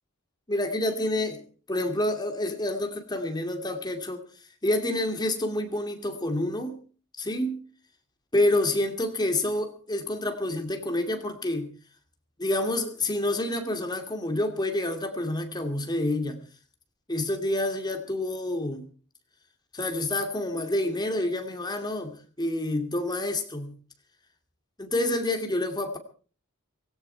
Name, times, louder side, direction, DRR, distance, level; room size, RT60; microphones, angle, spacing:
voice 1, 0.5-4.2 4.6-6.8 7.2-7.6 8.3-11.7 12.4-16.4 17.1-18.8 19.7-23.7 24.8-26.0, left 1 dB, 20° left, 6 dB, 2.5 m, -28 dB
18.0 x 17.0 x 4.6 m, 0.40 s
head